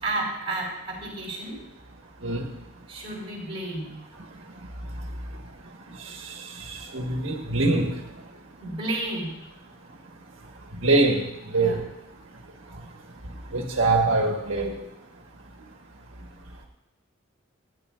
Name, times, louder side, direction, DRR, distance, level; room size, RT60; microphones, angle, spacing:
voice 1, 0.0-1.6 2.9-3.9 8.6-9.4 11.5-11.8, right 2 dB, 30° right, -4 dB, 4.6 m, -31 dB
voice 2, 6.9-7.9 10.8-11.2 11.5-11.7 13.5-14.7, right 2 dB, 80° right, 0 dB, 1.3 m, -22 dB
25.0 x 10.0 x 2.5 m, 0.88 s
head